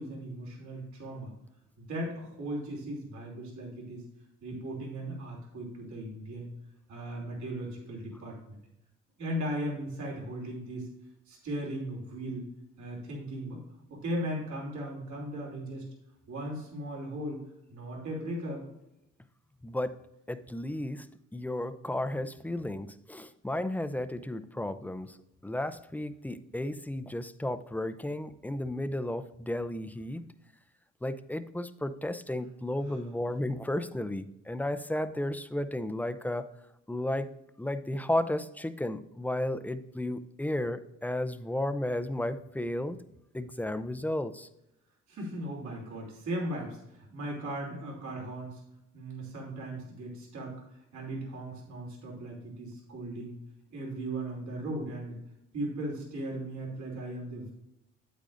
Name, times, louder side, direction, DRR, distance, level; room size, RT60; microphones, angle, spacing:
voice 1, 0.0-1.3 1.8-4.0 4.4-6.5 6.9-8.6 9.2-10.9 11.3-12.5 12.8-13.6 14.0-15.8 16.3-17.4 17.7-18.6 32.8-33.0 45.1-48.6 48.9-50.5 50.9-53.4 53.7-55.2 55.5-57.5, right 1 dB, 70° right, -2 dB, 3.0 m, -37 dB
voice 2, 19.6-20.0 20.3-21.1 21.3-25.2 25.4-30.2 31.0-36.5 36.9-37.3 37.6-43.0 43.3-44.5, left 1 dB, 5° left, 11 dB, 0.4 m, -33 dB
8.8 x 8.4 x 2.6 m, 0.86 s
cardioid pair, 90°, 30 cm